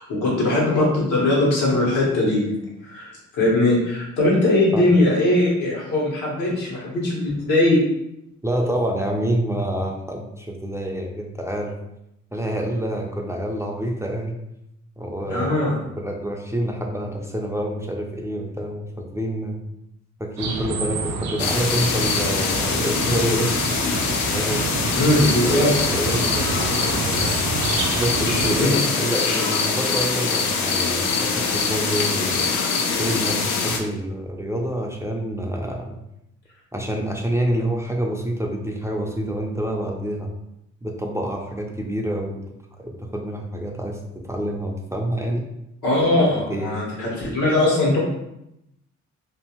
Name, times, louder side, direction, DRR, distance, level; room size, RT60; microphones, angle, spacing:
voice 1, 0.0-2.5 2.8-7.8 15.3-15.8 24.9-25.7 28.6-28.7 45.8-48.0, left 2 dB, 85° left, -5 dB, 1.3 m, -20 dB
voice 2, 8.4-11.8 12.3-14.4 15.0-19.6 20.2-23.6 24.3-24.7 25.1-27.3 28.0-32.4 33.0-35.9 36.7-40.3 40.8-42.4 42.8-45.5 46.0-46.7, right 1 dB, 10° right, 0 dB, 0.3 m, -27 dB
sound 1, 20.4-28.6, right 4 dB, 70° right, 0.5 m, -28 dB
sound 2, 21.4-33.8, left 4 dB, 65° left, 0.5 m, -23 dB
2.7 x 2.5 x 2.8 m, 0.83 s
cardioid pair, 90°, 30 cm